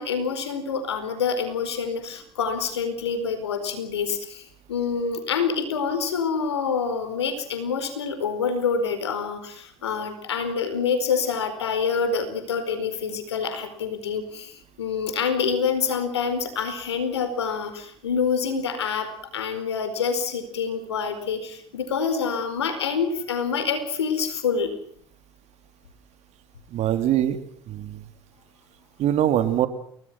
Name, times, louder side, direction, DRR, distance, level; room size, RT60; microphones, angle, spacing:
voice 1, 0.0-24.7, left 6 dB, 90° left, 9 dB, 4.6 m, -27 dB
voice 2, 26.7-27.4 27.7-28.0 29.0-29.7, right 11 dB, 55° right, 9 dB, 3.3 m, -22 dB
30.0 x 19.5 x 6.2 m, 0.63 s
hypercardioid pair, 70°, 14 cm